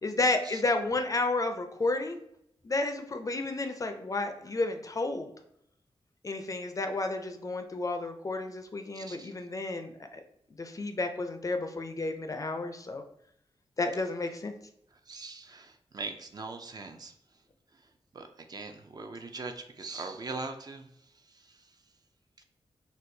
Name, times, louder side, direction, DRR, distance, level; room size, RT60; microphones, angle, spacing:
voice 1, 0.0-2.2 2.6-5.3 6.2-10.2 10.6-13.0 13.8-14.5, left 2 dB, 35° left, 6 dB, 0.4 m, -31 dB
voice 2, 8.9-9.3 15.1-17.1 18.1-20.9 21.5-21.6, right 3 dB, 40° right, 6 dB, 0.4 m, -41 dB
4.2 x 2.2 x 2.6 m, 0.72 s
wide cardioid pair, 115°, 11 cm